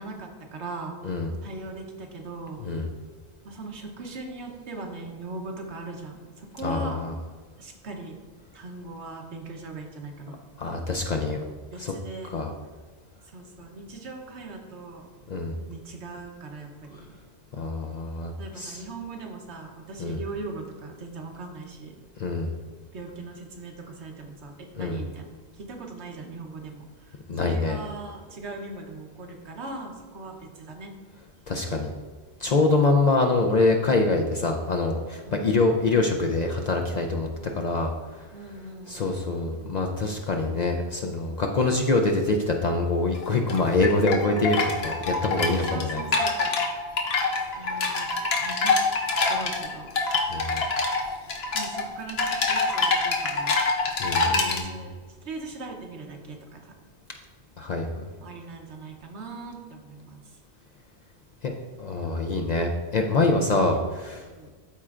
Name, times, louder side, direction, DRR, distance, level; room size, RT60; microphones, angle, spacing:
voice 1, 0.0-1.1 1.4-2.6 3.4-7.0 7.6-8.2 8.5-10.4 11.7-12.3 13.3-15.1 15.7-17.1 18.4-22.0 22.9-25.3 25.6-30.9 35.3-35.6 38.3-39.5 45.6-46.6 47.6-48.1 48.3-48.9 49.3-49.9 51.5-53.6 54.3-54.9 55.2-56.7 58.2-60.2 63.7-63.8 64.3-64.5, right 3 dB, 75° right, 2 dB, 1.2 m, -39 dB
voice 2, 6.6-7.1 10.3-11.4 11.8-11.9 12.3-12.5 15.3-15.5 17.6-18.8 20.0-20.2 22.2-22.5 24.8-25.0 27.3-27.8 31.5-31.9 32.4-37.3 37.5-37.9 38.9-46.0 47.7-47.8 50.3-50.6 54.0-54.8 57.6-58.0 61.4-61.5 61.8-64.2, left 3 dB, 55° left, 3 dB, 0.5 m, -25 dB
sound 1, 43.2-54.6, left 3 dB, 70° left, 1.1 m, -25 dB
12.5 x 4.3 x 2.4 m, 1.4 s
omnidirectional pair, 1.1 m